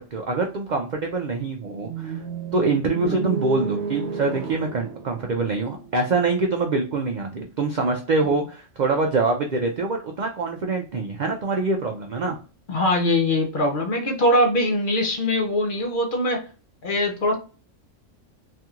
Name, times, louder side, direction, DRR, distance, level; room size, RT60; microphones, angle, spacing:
voice 1, 0.0-2.2 2.5-12.4, right 3 dB, 85° right, 3 dB, 0.4 m, -25 dB
sound 1, 1.8-5.9, right 6 dB, 60° right, 0.7 m, -31 dB
voice 2, 12.7-16.4 16.8-17.4, left 1 dB, 55° left, 3 dB, 0.6 m, -22 dB
3.3 x 2.8 x 2.3 m, 0.36 s
omnidirectional pair, 1.4 m